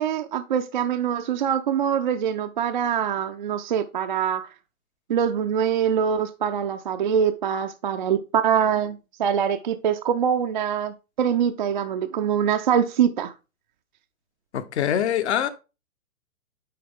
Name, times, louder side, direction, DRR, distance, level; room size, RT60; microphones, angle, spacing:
voice 1, 0.0-4.5 5.1-13.3, right 8 dB, 40° right, 0.4 m, -24 dB
voice 2, 14.5-15.5, left 9 dB, 55° left, 1.0 m, -24 dB
9.3 x 3.5 x 3.6 m
figure-of-eight pair, 125°, 41 cm